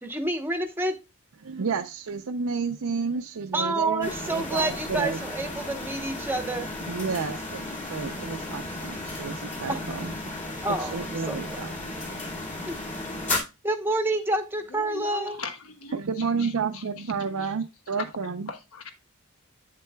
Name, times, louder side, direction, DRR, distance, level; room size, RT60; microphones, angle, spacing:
voice 1, 0.0-1.0 3.5-6.7 9.7-9.8 10.6-11.6 12.7-12.8 13.6-15.4, right 2 dB, 10° right, 0.9 m, -28 dB
voice 2, 1.4-5.2 6.8-10.3 10.8-11.7 12.1-12.2 15.9-18.5, right 5 dB, 70° right, 0.6 m, -31 dB
sound 1, 4.0-13.4, left 2 dB, 35° left, 2.3 m, -34 dB
voice 3, 14.7-16.0 16.4-16.8 17.4-17.5 17.9-18.1 18.5-18.9, left 4 dB, 70° left, 1.3 m, -39 dB
8.3 x 7.5 x 2.2 m
head